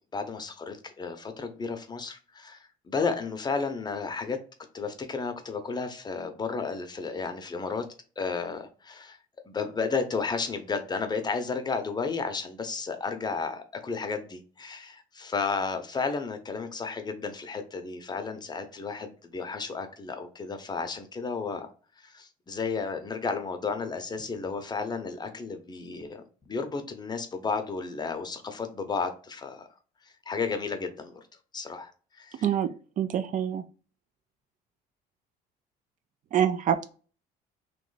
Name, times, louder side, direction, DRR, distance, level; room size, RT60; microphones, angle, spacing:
voice 1, 0.1-4.4 4.7-7.8 8.2-9.2 9.5-21.7 22.0-29.7 30.3-31.2 31.5-31.9 32.2-32.4, left 4 dB, 25° left, 0.7 m, -33 dB
voice 2, 33.0-33.6 36.3-36.9, right 9 dB, 50° right, 0.4 m, -25 dB
3.1 x 3.0 x 3.9 m
cardioid pair, 110°, 17 cm